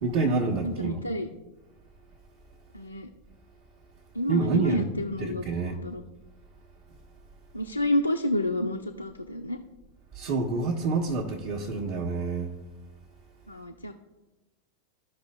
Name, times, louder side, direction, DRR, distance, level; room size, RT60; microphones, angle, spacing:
voice 1, 0.0-1.0 4.3-4.9 5.2-5.8 10.1-12.5, right 3 dB, 50° right, 1.2 m, -27 dB
voice 2, 0.6-1.3 2.7-3.1 4.1-6.0 7.5-9.6 13.5-13.9, left 1 dB, 90° left, 0.5 m, -29 dB
15.0 x 5.5 x 2.2 m
figure-of-eight pair, 90°, 0 cm